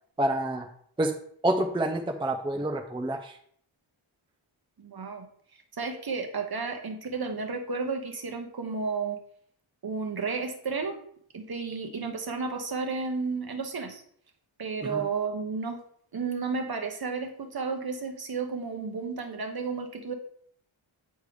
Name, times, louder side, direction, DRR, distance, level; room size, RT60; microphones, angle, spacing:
voice 1, 0.2-0.7 1.0-1.1 1.4-3.3 14.8-15.0, right 1 dB, 10° right, 4 dB, 0.5 m, -28 dB
voice 2, 4.8-5.3 5.8-9.2 9.8-11.0 11.3-14.0 14.6-15.8 16.1-20.1, right 4 dB, 50° right, 4 dB, 1.0 m, -32 dB
8.1 x 3.3 x 5.1 m, 0.62 s
wide cardioid pair, 130°, 49 cm